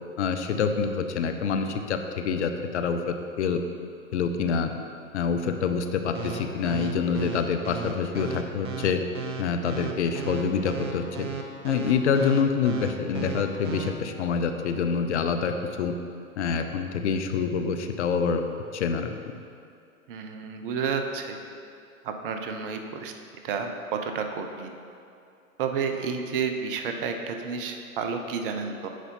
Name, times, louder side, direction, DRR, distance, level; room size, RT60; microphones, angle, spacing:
voice 1, 0.2-3.6 4.1-4.7 5.1-9.0 9.4-11.3 11.6-15.9 16.4-18.4 18.7-19.1, left 6 dB, 55° left, 6 dB, 0.7 m, -26 dB
sound 1, 6.2-13.9, right 7 dB, 20° right, 0.3 m, -34 dB
voice 2, 20.1-21.4 22.0-23.1 23.4-24.8 25.6-28.9, right 5 dB, 40° right, 5 dB, 0.7 m, -31 dB
9.1 x 5.6 x 4.4 m, 2.4 s
figure-of-eight pair, 105°, 42 cm